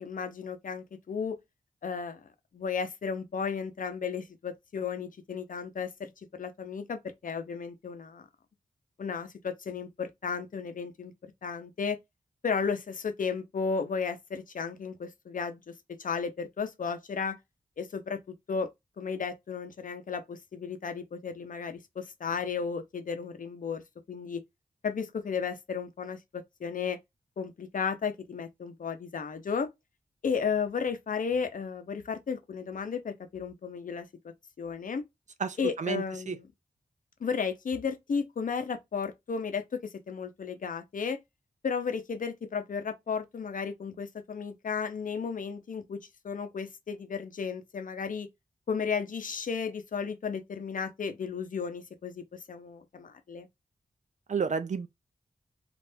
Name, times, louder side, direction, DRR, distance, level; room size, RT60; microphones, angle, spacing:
voice 1, 0.0-1.4 1.8-2.3 2.5-8.3 9.0-11.1 11.4-12.0 12.4-15.7 16.0-17.4 17.8-18.7 19.0-23.8 24.1-24.4 24.8-27.0 27.4-29.7 30.2-35.0 35.6-36.5 37.2-41.2 41.6-48.3 48.7-53.5, left 6 dB, 70° left, 0.6 m, -34 dB
voice 2, 35.4-36.4 54.3-54.9, right 6 dB, 60° right, 0.5 m, -31 dB
3.4 x 2.5 x 2.6 m
wide cardioid pair, 75°, 14 cm